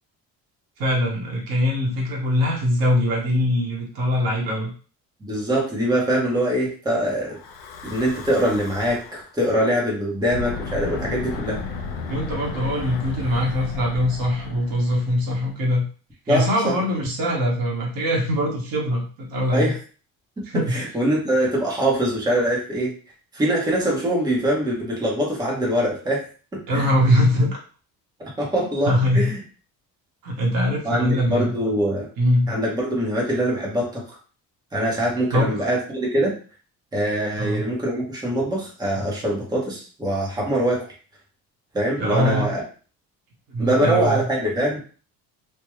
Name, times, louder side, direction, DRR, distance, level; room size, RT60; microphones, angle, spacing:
voice 1, 0.8-4.7 12.1-15.9 16.3-19.7 20.5-20.8 26.7-27.6 28.6-29.3 30.2-31.5 32.2-32.5 35.3-35.5 37.4-37.6 42.0-42.5 43.5-44.3, equal, 80° right, -1 dB, 1.2 m, -22 dB
voice 2, 5.2-7.4 7.8-11.6 16.3-16.8 19.5-19.8 20.7-22.9 23.3-26.3 26.5-26.9 28.2-29.4 30.8-32.1 32.5-34.2 34.7-36.3 36.9-40.9 41.7-42.6 43.6-44.8, right 1 dB, 10° right, -3 dB, 0.8 m, -23 dB
Breathing / Wind, 7.3-9.3 10.2-15.5, left 4 dB, 85° left, 0.7 m, -34 dB
3.4 x 2.1 x 3.1 m, 0.38 s
cardioid pair, 170°, 35 cm